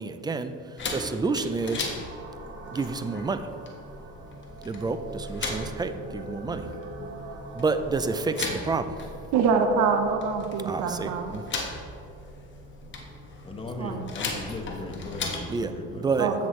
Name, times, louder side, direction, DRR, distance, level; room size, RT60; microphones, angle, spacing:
voice 1, 0.0-1.9 2.7-3.5 4.6-6.7 7.5-9.0 10.6-11.5 15.5-16.3, right 4 dB, 15° right, 10 dB, 0.3 m, -29 dB
sound 1, 0.8-15.6, left 3 dB, 35° left, 1.4 m, -38 dB
sound 2, 1.6-8.4, right 2 dB, 40° right, 1.4 m, -43 dB
voice 2, 9.3-11.3 13.8-14.1 16.2-16.3, right 5 dB, 75° right, 6 dB, 0.9 m, -25 dB
voice 3, 13.4-16.0, left 2 dB, 15° left, 2 dB, 1.2 m, -37 dB
15.0 x 6.1 x 3.1 m, 2.7 s
cardioid pair, 130°, 31 cm